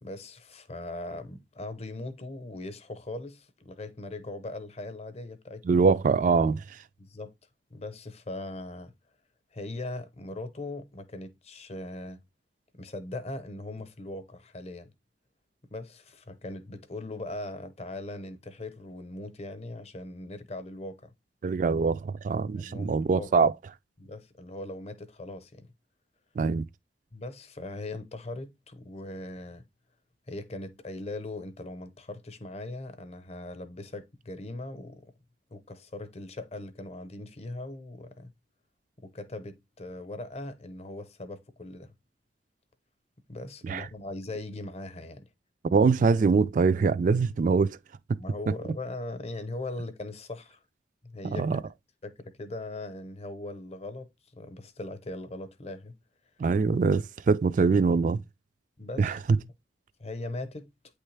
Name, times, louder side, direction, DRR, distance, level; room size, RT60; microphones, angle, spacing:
voice 1, 0.0-5.8 7.0-7.3 7.7-8.9 9.5-12.2 12.7-14.9 15.7-21.1 22.6-23.4 24.0-25.7 27.1-29.6 30.3-35.1 35.5-38.3 39.0-41.9 43.3-45.3 48.2-50.6 51.0-51.5 52.0-56.0 58.8-59.5 60.0-60.7, left 2 dB, 35° left, 0.8 m, -40 dB
voice 2, 5.7-6.6 21.4-23.5 26.4-26.6 43.6-43.9 45.7-47.8 51.2-51.6 56.4-58.2 59.0-59.2, right 4 dB, 45° right, 0.3 m, -23 dB
8.8 x 3.3 x 3.3 m
head